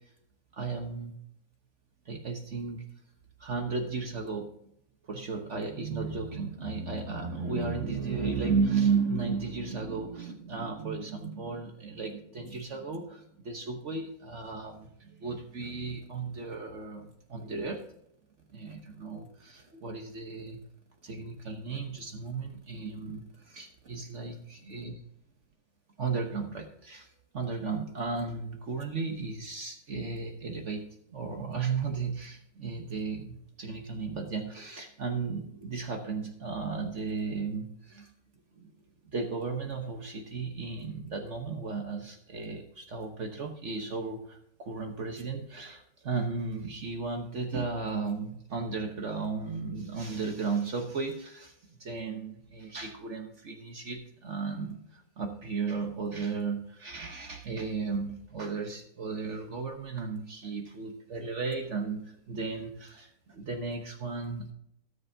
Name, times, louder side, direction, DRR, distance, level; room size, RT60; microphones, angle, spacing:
voice 1, 0.5-1.1 2.0-2.8 3.4-4.5 5.1-17.8 18.5-20.6 21.0-24.4 24.7-24.9 26.0-38.1 38.6-38.7 39.1-64.5, right 4 dB, 55° right, 3 dB, 1.4 m, -34 dB
17.5 x 6.8 x 2.7 m, 0.75 s
omnidirectional pair, 1.5 m